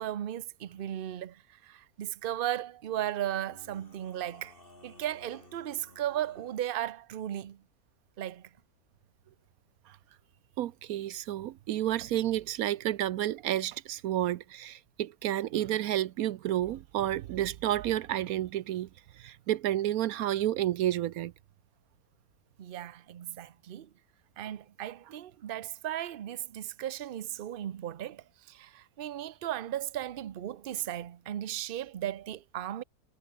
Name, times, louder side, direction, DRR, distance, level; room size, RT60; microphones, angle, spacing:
voice 1, 0.0-4.5 4.8-7.6 8.2-8.5 22.6-23.9 24.4-32.8, right 12 dB, 50° right, 0.6 m, -36 dB
sound 1, 0.6-1.1 3.3-6.7, left 2 dB, 35° left, 4.6 m, -57 dB
voice 2, 10.6-18.9 19.2-21.3, right 12 dB, 70° right, 1.0 m, -30 dB
omnidirectional pair, 1.7 m